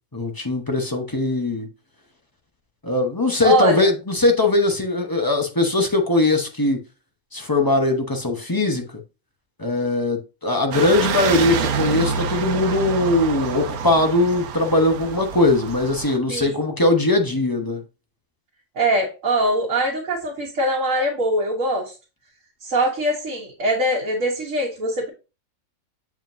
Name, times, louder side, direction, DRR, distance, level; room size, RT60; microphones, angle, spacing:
voice 1, 0.1-1.7 2.8-6.8 7.3-8.8 9.6-17.8, left 2 dB, 20° left, 0.8 m, -20 dB
voice 2, 3.4-3.9 16.3-16.6 18.7-21.9 22.6-25.1, right 1 dB, 60° right, 1.7 m, -22 dB
sound 1, 10.7-16.2, right 6 dB, 85° right, 1.2 m, -27 dB
7.4 x 4.9 x 2.7 m
omnidirectional pair, 1.5 m